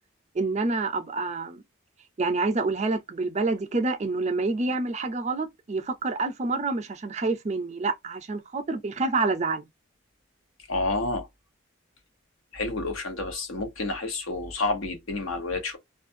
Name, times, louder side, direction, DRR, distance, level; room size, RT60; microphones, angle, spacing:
voice 1, 0.3-1.6 2.2-9.7, right 3 dB, 35° right, 0.4 m, -27 dB
voice 2, 10.7-11.3 12.5-15.8, left 3 dB, 80° left, 0.9 m, -29 dB
2.4 x 2.2 x 2.5 m
head